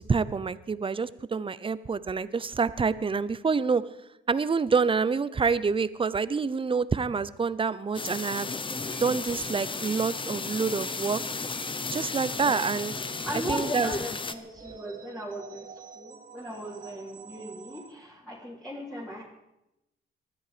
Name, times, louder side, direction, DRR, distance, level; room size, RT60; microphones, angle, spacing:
voice 1, 0.0-3.9 4.3-8.5 9.0-11.2 11.9-12.9 13.5-13.9, right 5 dB, 25° right, 17 dB, 0.8 m, -27 dB
sound 1, 7.9-14.3, left 4 dB, 25° left, 1.0 m, -34 dB
sound 2, 8.0-17.9, right 6 dB, 45° right, 1.4 m, -49 dB
voice 2, 8.7-9.0 12.3-12.6 13.2-19.2, equal, 5° left, -5 dB, 3.3 m, -38 dB
20.0 x 13.0 x 5.1 m, 0.88 s
cardioid pair, 90°, 20 cm